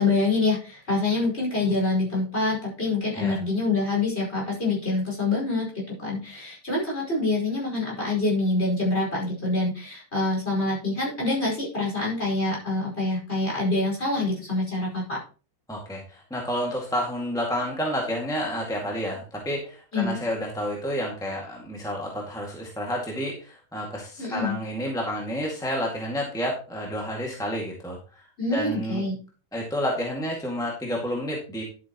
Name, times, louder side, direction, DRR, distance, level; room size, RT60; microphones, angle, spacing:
voice 1, 0.0-15.2 19.9-20.2 24.2-24.6 28.4-29.2, left 3 dB, 40° left, -4 dB, 5.4 m, -26 dB
voice 2, 15.7-28.2 28.5-29.0 29.5-31.6, equal, ahead, -2 dB, 2.0 m, -30 dB
11.5 x 8.4 x 3.0 m, 0.37 s
omnidirectional pair, 1.7 m